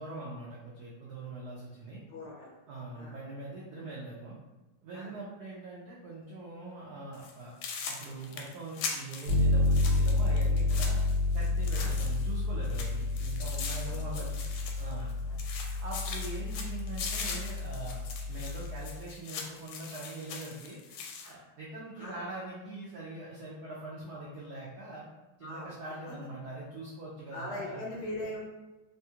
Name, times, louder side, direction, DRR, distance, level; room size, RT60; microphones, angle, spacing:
voice 1, 0.0-2.0 2.7-4.4 4.8-7.5 7.9-11.0 11.3-14.5 14.8-21.0 21.3-25.1 25.4-27.8, right 2 dB, 80° right, -5 dB, 0.8 m, -43 dB
voice 2, 2.1-2.6 2.9-3.2 4.9-5.1 11.7-12.0 13.8-14.2 15.7-15.8 21.2-21.3 22.0-22.3 25.4-25.7 27.3-28.4, left 1 dB, 65° left, -4 dB, 1.3 m, -41 dB
sound 1, 7.1-7.3 7.6-12.4 12.6-15.1 15.4-21.3, left 5 dB, 85° left, 1.5 m, -41 dB
Bass guitar, 9.3-19.0, left 2 dB, 60° right, 1.1 m, -30 dB
3.5 x 2.3 x 2.7 m, 1.1 s
omnidirectional pair, 2.4 m